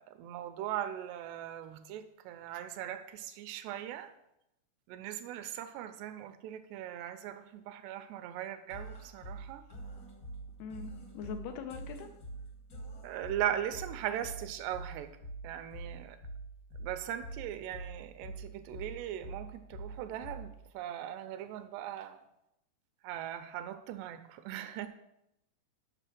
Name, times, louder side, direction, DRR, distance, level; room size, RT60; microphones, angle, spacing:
voice 1, 0.0-4.1 4.9-9.7 13.0-15.2 15.4-16.2 16.8-22.2 23.0-24.9, right 11 dB, 80° right, 9 dB, 2.6 m, -39 dB
sound 1, 8.7-20.7, right 2 dB, 60° left, 1.0 m, -46 dB
voice 2, 10.6-12.1, left 6 dB, 80° left, 6 dB, 2.5 m, -42 dB
8.9 x 6.1 x 6.1 m, 0.83 s
omnidirectional pair, 5.0 m